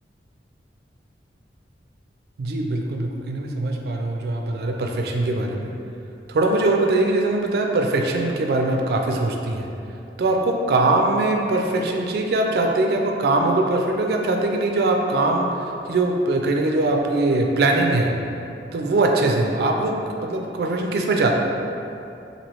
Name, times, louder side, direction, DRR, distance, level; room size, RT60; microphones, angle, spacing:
voice 1, 2.4-5.7 6.3-9.7 10.2-15.5 15.9-18.1 18.7-21.3, right 2 dB, 60° right, 2 dB, 0.3 m, -21 dB
2.9 x 2.6 x 3.0 m, 2.7 s
head